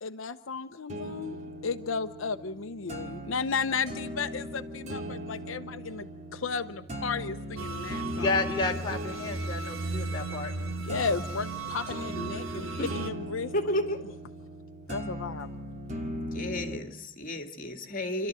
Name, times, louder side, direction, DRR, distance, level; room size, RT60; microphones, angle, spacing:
voice 1, 0.0-1.4 1.6-8.4 10.6-13.5 14.9-15.5, left 5 dB, 80° left, 0.8 m, -34 dB
sound 1, 0.9-16.9, equal, 35° right, 2.4 m, -39 dB
sound 2, 7.6-13.1, right 3 dB, 90° right, 1.7 m, -36 dB
voice 2, 8.2-10.5, left 3 dB, 25° left, 3.6 m, -31 dB
voice 3, 13.5-14.0 16.3-18.3, left 1 dB, 45° left, 2.4 m, -32 dB
29.0 x 13.0 x 9.0 m
head